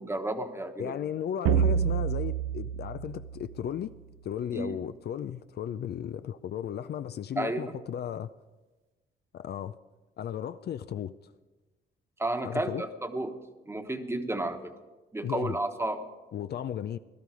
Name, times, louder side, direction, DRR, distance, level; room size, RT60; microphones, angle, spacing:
voice 1, 0.0-0.9 4.5-4.8 7.4-7.6 12.2-13.3 13.7-14.7 15.1-16.1, right 2 dB, 15° right, 1.3 m, -32 dB
voice 2, 0.8-3.9 4.2-8.3 9.3-9.8 10.2-11.1 12.4-12.8 15.2-15.6 16.3-17.0, left 9 dB, 55° left, 0.5 m, -35 dB
sound 1, 1.5-4.1, right 8 dB, 80° right, 0.7 m, -28 dB
17.0 x 13.0 x 4.9 m
cardioid pair, 90°, 20 cm